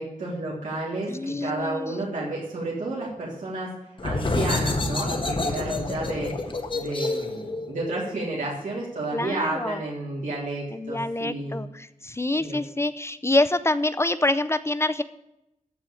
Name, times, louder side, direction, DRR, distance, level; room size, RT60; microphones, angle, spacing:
voice 1, 0.0-3.7 4.0-6.3 6.7-11.6 12.3-12.6, right 2 dB, 70° right, -5 dB, 3.2 m, -31 dB
voice 2, 1.1-2.0 9.1-9.8 10.7-15.0, left 2 dB, 20° left, 12 dB, 0.5 m, -26 dB
sound 1, 4.0-9.4, left 2 dB, 40° left, 1.4 m, -29 dB
14.0 x 4.7 x 8.4 m, 0.86 s
wide cardioid pair, 145°, 14 cm